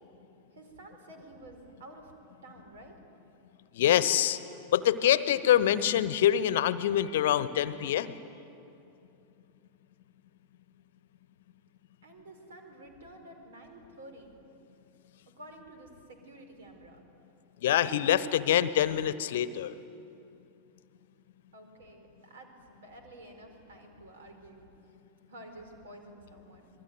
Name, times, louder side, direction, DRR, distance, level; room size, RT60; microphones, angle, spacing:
voice 1, 0.5-2.1 2.4-3.0 12.0-14.4 15.4-17.0 21.5-24.7 25.3-26.7, right 1 dB, 65° right, 5 dB, 4.7 m, -50 dB
voice 2, 3.7-4.4 4.7-8.1 17.6-19.7, left 11 dB, 55° left, 16 dB, 1.0 m, -25 dB
27.0 x 21.0 x 9.5 m, 2.7 s
figure-of-eight pair, 90°, 0 cm